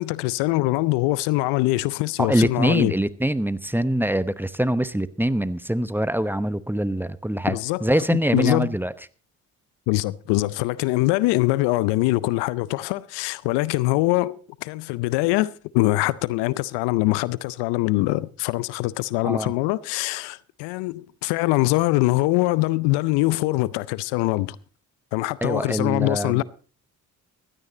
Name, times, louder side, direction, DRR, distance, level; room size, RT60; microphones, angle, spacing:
voice 1, 0.0-2.9 7.5-8.8 9.9-24.6 25.1-26.4, left 19 dB, 75° left, 0.6 m, -23 dB
voice 2, 2.2-8.9 19.2-19.5 25.4-26.4, right 1 dB, 5° right, 0.9 m, -24 dB
16.0 x 12.5 x 4.0 m
hypercardioid pair, 50°, 41 cm